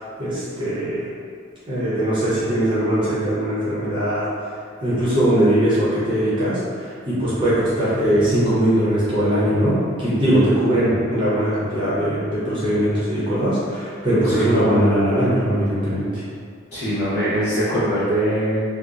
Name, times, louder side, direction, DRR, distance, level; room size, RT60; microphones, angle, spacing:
voice 1, 0.2-1.1 1.7-4.3 4.8-16.2, right 1 dB, 25° right, -11 dB, 0.7 m, -20 dB
voice 2, 16.7-18.6, equal, 55° left, -11 dB, 1.0 m, -22 dB
2.7 x 2.0 x 2.4 m, 2.1 s
head